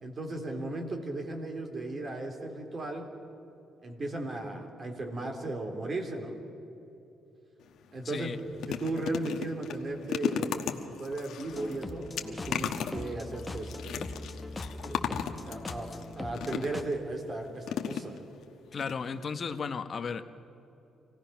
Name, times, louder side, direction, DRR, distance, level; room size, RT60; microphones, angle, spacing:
voice 1, 0.0-3.1 3.8-6.4 7.9-8.3 8.7-10.5 11.0-14.1 14.8-15.1 15.4-18.2, right 2 dB, 40° right, 3 dB, 3.4 m, -36 dB
sound 1, 7.6-7.8 8.1-16.9 17.6-18.4 18.8-18.9 19.2-19.3, left 8 dB, 75° left, 1.3 m, -36 dB
voice 2, 8.0-8.4 18.7-20.2, left 5 dB, 45° left, 9 dB, 1.1 m, -34 dB
sound 2, 11.4-16.8, left 2 dB, 15° left, 1.3 m, -41 dB
26.0 x 17.0 x 5.9 m, 2.9 s
cardioid pair, 90°, 0 cm